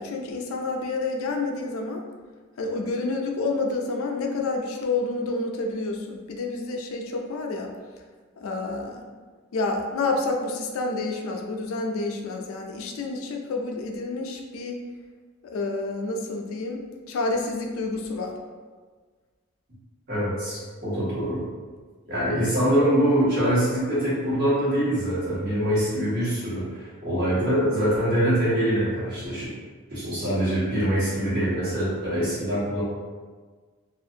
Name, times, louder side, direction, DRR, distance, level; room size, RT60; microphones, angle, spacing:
voice 1, 0.0-2.0 2.6-7.7 8.4-9.0 9.5-14.8 15.5-16.8 17.1-18.3, left 3 dB, 70° left, 2 dB, 0.4 m, -29 dB
voice 2, 20.1-21.4 22.1-29.5 29.9-32.8, right 1 dB, 50° right, -10 dB, 1.2 m, -24 dB
2.5 x 2.4 x 2.7 m, 1.5 s
head